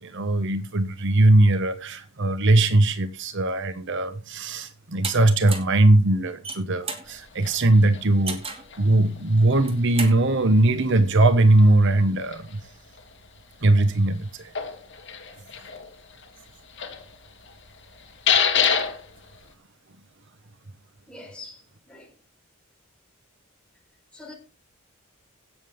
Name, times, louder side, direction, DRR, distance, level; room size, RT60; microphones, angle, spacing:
voice 1, 0.0-8.4 8.8-12.6 13.6-14.5, right 2 dB, 60° right, 1.0 m, -20 dB
sound 1, 5.0-5.2 5.5-5.8 6.3-7.1 8.3-8.7 9.5-10.2, right 4 dB, 25° right, 2.4 m, -32 dB
sound 2, 7.0-19.5, left 7 dB, 60° left, 2.5 m, -31 dB
voice 2, 21.1-22.2 24.1-24.3, left 2 dB, 5° left, 4.2 m, -44 dB
17.0 x 7.3 x 3.6 m
head